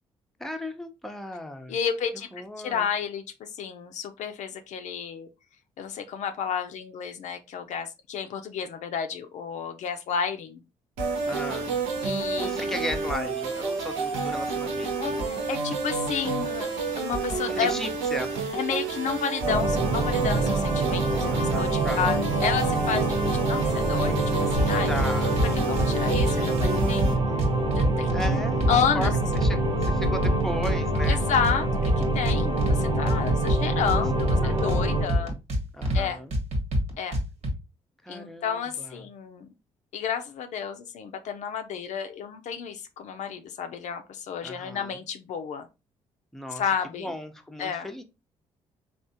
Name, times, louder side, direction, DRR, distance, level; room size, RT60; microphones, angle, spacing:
voice 1, 0.4-1.8 2.3-2.9 11.3-11.8 12.4-15.2 17.5-18.3 21.3-22.2 24.9-25.4 28.1-31.2 33.9-34.0 34.4-35.4 35.7-36.4 38.0-39.0 44.4-45.0 46.3-46.6 47.0-48.0, left 1 dB, 5° left, 5 dB, 0.7 m, -36 dB
voice 2, 1.7-5.3 5.8-10.6 12.0-12.5 15.0-16.7 17.0-17.7 18.5-24.9 25.5-27.2 27.7-29.1 31.1-35.3 35.9-36.2 37.0-37.2 38.1-39.5 39.9-45.7 46.5-47.1 47.6-47.9, left 7 dB, 65° left, 7 dB, 0.5 m, -31 dB
sound 1, 11.0-27.1, right 4 dB, 90° right, 0.8 m, -30 dB
sound 2, 19.4-35.0, right 2 dB, 45° right, 0.9 m, -26 dB
sound 3, 24.6-25.1 25.4-26.3 26.6-28.3 28.6-29.5 29.8-31.6 31.8-32.8 33.1-34.8 35.1-36.0 36.3-37.5, equal, 60° right, 1.3 m, -25 dB
3.5 x 2.4 x 2.7 m, 0.27 s
supercardioid pair, 60°, 13 cm